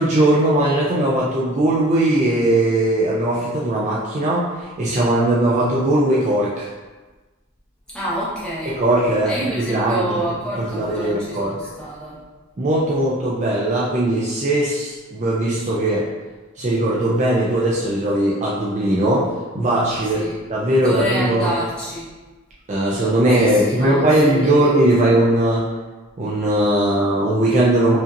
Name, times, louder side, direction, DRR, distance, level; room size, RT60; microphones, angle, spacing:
voice 1, 0.0-6.7 8.6-10.1 10.6-11.5 12.6-16.0 16.6-19.3 19.5-21.5 22.7-25.7 26.2-28.0, right 1 dB, 30° right, -6 dB, 0.4 m, -19 dB
voice 2, 7.9-8.8 9.2-12.2 12.9-13.0 20.1-20.4 20.7-22.0 23.4-24.7, equal, 5° left, -10 dB, 1.2 m, -27 dB
4.9 x 2.8 x 2.6 m, 1.2 s
head